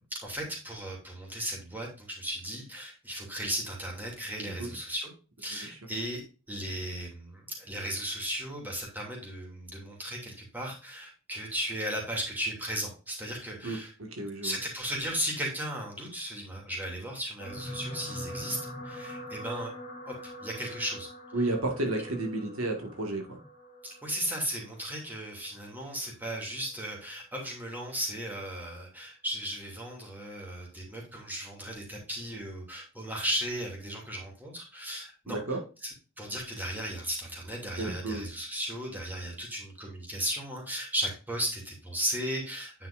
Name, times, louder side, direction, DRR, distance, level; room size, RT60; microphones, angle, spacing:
voice 1, 0.1-5.1 5.4-6.2 6.5-13.9 14.4-18.6 18.8-19.7 20.0-20.1 20.4-21.1 23.8-35.4 35.8-35.9 36.2-42.9, equal, 10° right, -2 dB, 2.7 m, -35 dB
voice 2, 13.6-14.6 21.3-23.4 35.3-35.6 37.8-38.2, right 2 dB, 80° right, 3 dB, 1.9 m, -32 dB
sound 1, 17.4-25.8 26.6-26.8 27.1-27.2, equal, 40° left, 2.4 m, -43 dB
9.5 x 5.8 x 2.6 m, 0.33 s
head